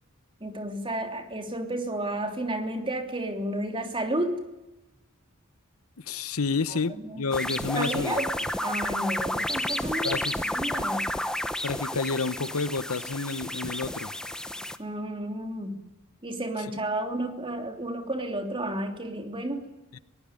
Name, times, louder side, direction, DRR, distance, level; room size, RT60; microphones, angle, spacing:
voice 1, 0.4-4.4 6.7-7.2 7.7-8.3 8.6-10.2 10.5-11.1 14.8-15.7 16.2-19.6, right 1 dB, 25° right, 3.0 m, -32 dB
voice 2, 6.0-8.2 10.0-10.4 11.6-14.1 19.9-20.0, left 4 dB, 85° left, 0.9 m, -30 dB
sound 1, 7.3-14.8, left 1 dB, 5° left, 1.0 m, -31 dB
22.0 x 18.5 x 9.8 m
head